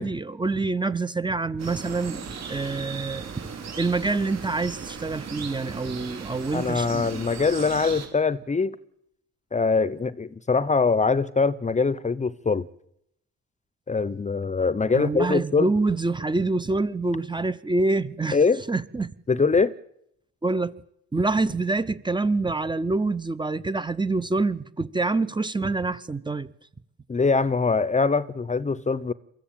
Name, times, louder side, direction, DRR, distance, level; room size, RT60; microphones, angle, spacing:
voice 1, 0.0-2.2 2.5-3.4 3.8-7.2 14.9-18.4 18.7-19.1 20.4-20.7 21.1-26.5, right 3 dB, 15° right, 0.9 m, -26 dB
sound 1, 1.6-8.1, right 6 dB, 60° right, 4.5 m, -37 dB
voice 2, 6.5-8.8 9.5-12.7 13.9-15.7 18.3-18.6 19.3-19.7 27.1-29.1, left 4 dB, 25° left, 0.8 m, -23 dB
23.5 x 14.0 x 8.9 m
cardioid pair, 90°, 30 cm